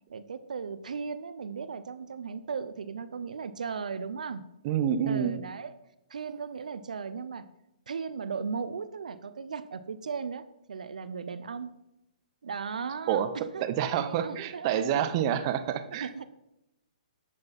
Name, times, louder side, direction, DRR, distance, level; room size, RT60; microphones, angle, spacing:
voice 1, 0.1-4.4 5.1-5.7 6.1-7.4 7.9-11.7 12.4-13.6 14.0-15.1 16.0-16.2, right 5 dB, 70° right, 14 dB, 0.7 m, -36 dB
voice 2, 4.6-5.4 13.1-13.3 13.6-16.1, right 9 dB, 40° right, 12 dB, 0.8 m, -28 dB
11.0 x 7.8 x 4.2 m, 0.89 s
hypercardioid pair, 130°, 4 cm